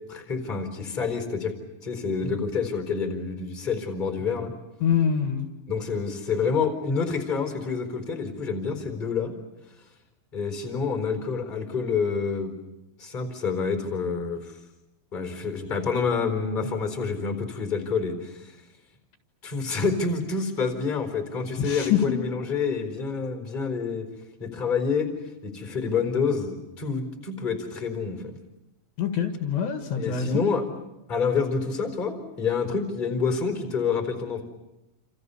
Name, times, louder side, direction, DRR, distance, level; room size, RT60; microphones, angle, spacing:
voice 1, 0.1-1.5 1.8-4.5 5.7-9.3 10.3-12.5 13.0-14.6 15.1-18.6 19.4-24.1 24.4-25.1 25.4-28.3 30.0-30.6 31.1-34.4, left 5 dB, 10° left, 6 dB, 3.7 m, -28 dB
voice 2, 4.8-5.5 21.6-22.3 29.0-30.4, left 7 dB, 65° left, 6 dB, 3.7 m, -25 dB
29.0 x 28.0 x 7.0 m, 0.92 s
omnidirectional pair, 5.6 m